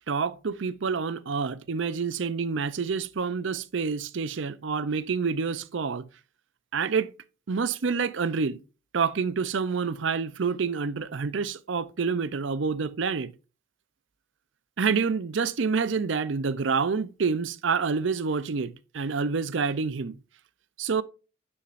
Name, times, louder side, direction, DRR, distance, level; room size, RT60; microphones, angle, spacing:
voice 1, 0.1-6.1 6.7-7.1 7.5-8.6 8.9-13.3 14.8-20.2 20.8-21.0, right 5 dB, 60° right, 0.5 m, -28 dB
9.6 x 6.2 x 2.5 m
head